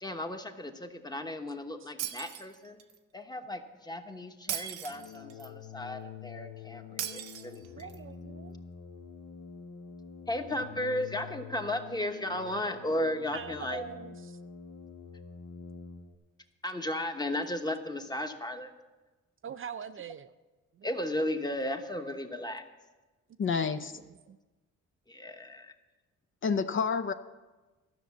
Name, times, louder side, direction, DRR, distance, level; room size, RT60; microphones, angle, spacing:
voice 1, 0.0-2.8 3.1-7.9 10.3-13.8 16.6-18.7 20.8-22.6 25.1-25.7, left 1 dB, 15° left, 6 dB, 1.1 m, -35 dB
Shatter, 2.0-3.0 4.5-5.5 7.0-8.0, right 10 dB, 85° right, 0.8 m, -38 dB
sound 1, 4.9-16.1, left 6 dB, 75° left, 1.1 m, -47 dB
voice 2, 7.8-8.6 13.3-14.4 19.4-20.3 20.7-20.9 23.5-24.4, right 8 dB, 45° right, 11 dB, 0.5 m, -43 dB
voice 3, 23.4-23.9 26.4-27.1, left 6 dB, 40° left, 9 dB, 0.6 m, -28 dB
12.5 x 6.3 x 8.2 m, 1.2 s
cardioid pair, 90°, 30 cm